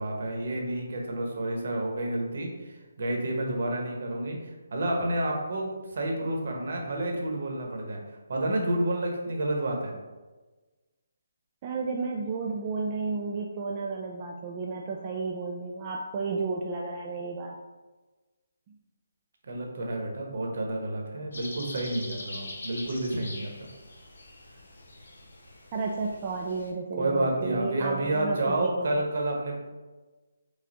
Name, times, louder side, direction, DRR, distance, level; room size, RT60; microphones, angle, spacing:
voice 1, 0.0-4.4 4.7-8.0 8.3-9.9 19.4-23.5 27.0-29.6, right 1 dB, 55° right, 0 dB, 1.1 m, -30 dB
voice 2, 11.6-17.5 25.7-28.9, right 4 dB, 25° right, -2 dB, 0.4 m, -32 dB
sound 1, 21.3-26.7, left 2 dB, 80° left, 1.1 m, -43 dB
4.9 x 2.3 x 4.1 m, 1.2 s
hypercardioid pair, 170°, 0 cm